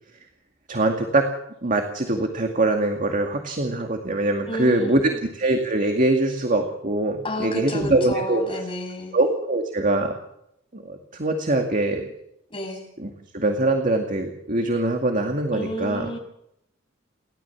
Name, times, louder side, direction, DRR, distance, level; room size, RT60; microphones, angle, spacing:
voice 1, 0.7-1.3 1.6-8.4 9.1-10.1 10.7-12.1 13.0-16.1, right 2 dB, 45° right, 4 dB, 2.2 m, -23 dB
voice 2, 4.5-5.2 7.2-9.1 12.5-12.8 15.5-16.2, left 1 dB, 30° left, 2 dB, 6.8 m, -31 dB
29.0 x 13.5 x 7.2 m, 0.78 s
head